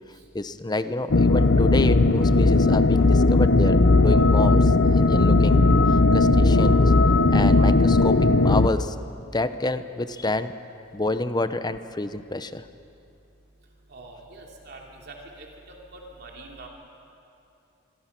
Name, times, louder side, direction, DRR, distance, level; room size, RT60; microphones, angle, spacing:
voice 1, 0.3-5.6 5.9-6.8 7.3-9.0 9.3-10.5 10.9-12.6, left 2 dB, 20° left, 11 dB, 0.8 m, -28 dB
sound 1, 1.1-8.7, left 2 dB, 65° left, 0.8 m, -17 dB
voice 2, 13.9-14.8 15.1-15.2 16.2-16.7, right 3 dB, 55° right, -1 dB, 3.0 m, -43 dB
26.5 x 23.5 x 6.0 m, 2.7 s
head